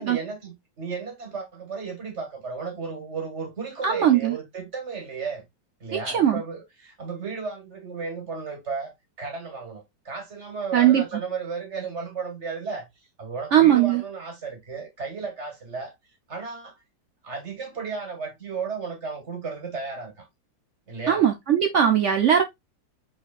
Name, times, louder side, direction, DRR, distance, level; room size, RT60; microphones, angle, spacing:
voice 1, 0.0-5.4 5.8-8.9 9.2-12.9 13.2-15.9 16.3-16.8 17.2-20.3 20.9-21.3, right 5 dB, 40° right, 1.9 m, -34 dB
voice 2, 3.8-4.4 6.1-6.4 10.7-11.0 13.5-14.0 21.1-22.4, right 10 dB, 80° right, 0.6 m, -19 dB
5.4 x 4.1 x 2.4 m
omnidirectional pair, 2.0 m